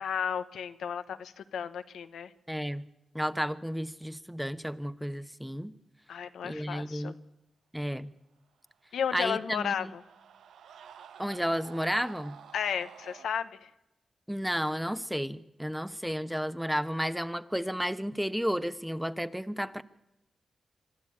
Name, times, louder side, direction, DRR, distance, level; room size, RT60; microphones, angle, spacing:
voice 1, 0.0-2.3 6.1-7.1 8.9-10.0 12.5-13.7, left 8 dB, 85° left, 10 dB, 0.9 m, -33 dB
voice 2, 2.5-2.9 3.1-5.7 6.4-7.1 7.7-8.1 9.1-9.9 11.2-12.4 14.3-19.8, equal, 5° right, 12 dB, 1.1 m, -32 dB
Screaming, 8.8-13.3, right 8 dB, 85° right, 0.8 m, -51 dB
25.0 x 12.5 x 8.8 m, 0.92 s
supercardioid pair, 45°, 0 cm